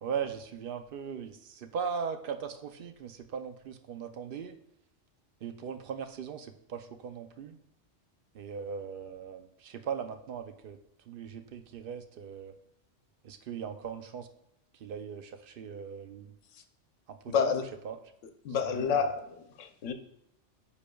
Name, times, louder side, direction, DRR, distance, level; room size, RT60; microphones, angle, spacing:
voice 1, 0.0-4.6 5.4-7.6 8.3-10.8 11.1-12.5 13.2-14.3 14.7-16.4 17.1-17.5 17.8-18.0 18.6-19.1, right 7 dB, 60° right, 8 dB, 0.6 m, -39 dB
voice 2, 17.3-17.7 18.4-19.9, left 6 dB, 85° left, 7 dB, 1.0 m, -29 dB
10.0 x 5.0 x 2.3 m, 0.80 s
omnidirectional pair, 1.2 m